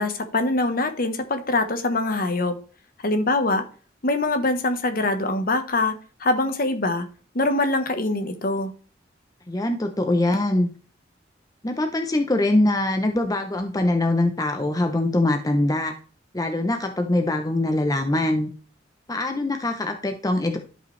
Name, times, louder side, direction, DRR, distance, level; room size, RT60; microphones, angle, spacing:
voice 1, 0.0-2.5 3.0-3.6 4.0-5.9 6.2-7.0 7.3-8.7, left 2 dB, 50° left, 8 dB, 1.1 m, -23 dB
voice 2, 9.5-10.7 11.6-15.9 16.3-18.5 19.1-20.6, left 1 dB, 20° left, 5 dB, 0.7 m, -23 dB
12.0 x 5.3 x 3.2 m, 0.39 s
head